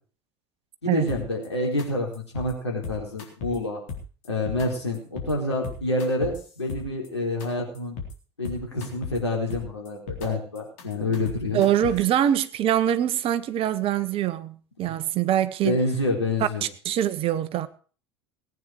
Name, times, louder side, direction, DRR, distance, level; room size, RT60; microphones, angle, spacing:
voice 1, 0.8-3.8 4.3-8.0 8.4-11.6 14.8-14.9 15.6-16.6, left 2 dB, 85° left, 4.2 m, -27 dB
sound 1, 1.1-1.5 1.8-1.9 2.1-2.5 2.8-3.6 3.9-4.7 4.9-5.3 5.6-7.1 7.4-7.5 7.7-8.1 8.4-9.2 9.5-10.3 10.6-12.1, left 5 dB, 55° left, 3.9 m, -36 dB
voice 2, 11.5-15.8 16.8-17.7, right 11 dB, 40° right, 1.2 m, -24 dB
19.0 x 9.3 x 4.7 m
figure-of-eight pair, 75°, 14 cm